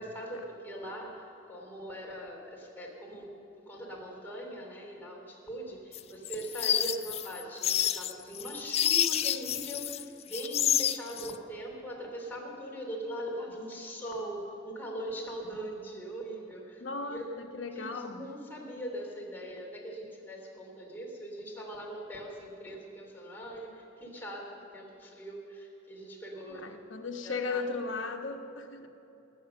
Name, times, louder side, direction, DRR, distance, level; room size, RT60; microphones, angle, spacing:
voice 1, 0.0-3.3 3.6-16.8 17.1-17.3 17.7-26.7 27.2-27.7, right 1 dB, 10° left, -2 dB, 2.9 m, -41 dB
sound 1, 5.9-10.0 10.3-11.3, left 10 dB, 35° left, 0.3 m, -29 dB
voice 2, 16.8-18.2 26.5-28.9, left 4 dB, 85° left, 3 dB, 1.0 m, -36 dB
19.0 x 8.6 x 6.7 m, 3.0 s
head